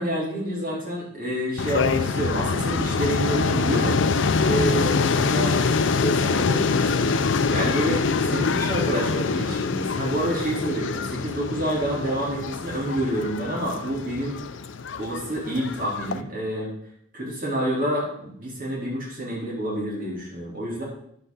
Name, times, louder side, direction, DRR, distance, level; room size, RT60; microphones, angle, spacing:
voice 1, 0.0-4.0 4.4-5.6 6.0-7.2 7.5-14.4 15.0-16.7 17.1-20.8, right 1 dB, 45° right, -6 dB, 3.8 m, -28 dB
sound 1, 1.6-16.2, left 4 dB, 70° left, 0.5 m, -25 dB
10.5 x 8.1 x 3.9 m, 0.69 s
head